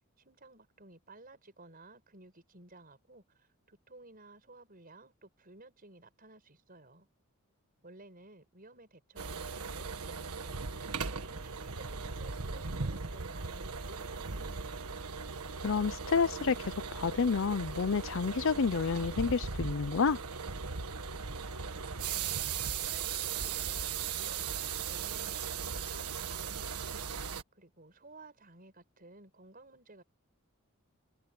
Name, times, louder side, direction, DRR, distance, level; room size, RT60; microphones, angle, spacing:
voice 1, 0.2-7.1 7.8-14.9 21.6-27.2 27.5-30.0, right 2 dB, 40° right, 5.9 m, -56 dB
sound 1, 9.2-27.4, right 5 dB, 90° right, 1.6 m, -38 dB
voice 2, 15.6-20.2, left 5 dB, 60° left, 0.5 m, -29 dB
head